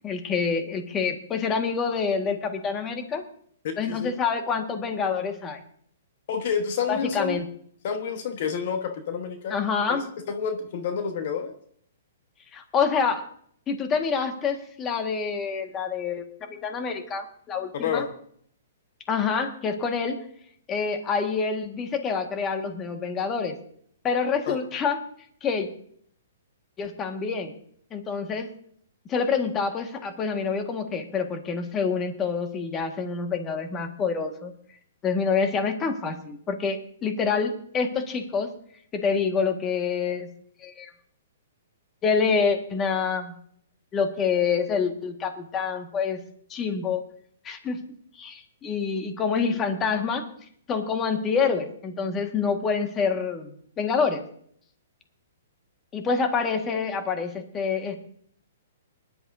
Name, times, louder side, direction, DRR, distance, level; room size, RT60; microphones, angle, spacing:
voice 1, 0.0-3.2 3.8-5.6 6.9-7.4 9.5-10.1 12.5-13.2 13.7-16.2 16.6-18.0 19.1-20.2 20.7-23.5 24.0-25.0 25.4-25.7 26.8-27.5 27.9-28.5 29.1-34.5 35.0-38.5 38.9-40.3 40.6-40.9 42.0-43.3 43.9-46.2 46.5-47.0 47.4-47.8 48.2-50.2 50.7-54.2 55.9-58.0, left 5 dB, 20° left, 5 dB, 1.7 m, -27 dB
voice 2, 3.6-4.1 6.3-7.4 7.8-9.6 9.9-11.6 17.7-18.1 24.5-24.6 49.5-49.6, left 6 dB, 55° left, 6 dB, 1.3 m, -29 dB
21.0 x 11.0 x 2.7 m, 0.62 s
hypercardioid pair, 130°, 0 cm